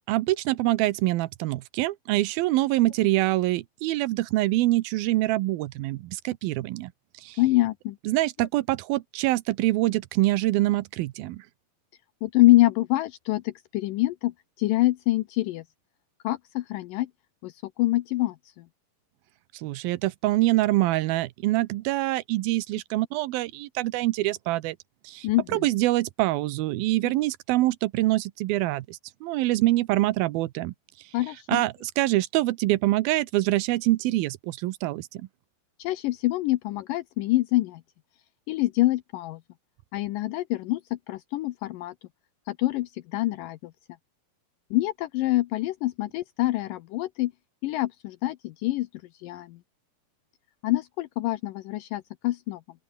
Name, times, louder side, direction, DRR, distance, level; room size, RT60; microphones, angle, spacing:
voice 1, 0.1-6.9 7.2-7.4 8.1-11.5 19.5-24.8 25.0-25.3 25.5-31.2 31.5-35.3, right 17 dB, 90° right, 2.7 m, -25 dB
voice 2, 7.4-8.0 12.2-15.6 16.2-17.1 17.4-18.6 25.2-25.7 31.1-31.6 35.8-37.8 38.5-39.4 39.9-41.9 42.5-43.7 44.7-47.3 47.6-49.6 50.6-52.6, left 17 dB, 75° left, 2.3 m, -26 dB
open air
omnidirectional pair, 4.1 m